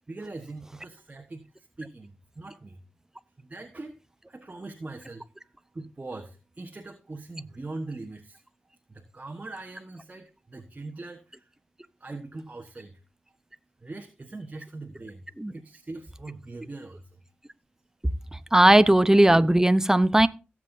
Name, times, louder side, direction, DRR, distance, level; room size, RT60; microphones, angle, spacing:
voice 1, 0.1-2.8 3.4-4.0 4.3-8.4 8.9-11.5 12.0-13.0 13.8-15.3 15.5-17.2 18.2-18.3, right 2 dB, 35° right, 1.3 m, -41 dB
voice 2, 18.3-20.3, right 1 dB, 10° right, 0.7 m, -18 dB
17.0 x 7.6 x 2.7 m
cardioid pair, 55°, 4 cm